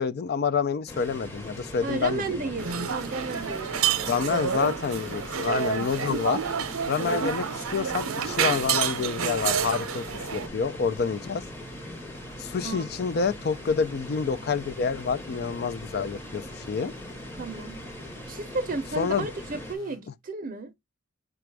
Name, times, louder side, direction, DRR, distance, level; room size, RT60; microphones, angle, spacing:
voice 1, 0.0-2.5 4.1-6.4 6.9-7.4 7.7-10.0 10.3-11.4 12.4-16.9 19.0-19.3, left 5 dB, 50° left, 0.4 m, -28 dB
sound 1, 0.9-20.0, right 1 dB, 75° left, 1.2 m, -48 dB
sound 2, 0.9-19.8, left 1 dB, 10° left, 0.8 m, -41 dB
voice 2, 1.8-3.7 7.1-7.4 12.6-13.0 17.3-17.8 18.2-20.7, right 3 dB, 40° right, 0.6 m, -33 dB
sound 3, 2.6-10.5, right 7 dB, 85° right, 0.6 m, -29 dB
5.0 x 2.3 x 4.6 m
head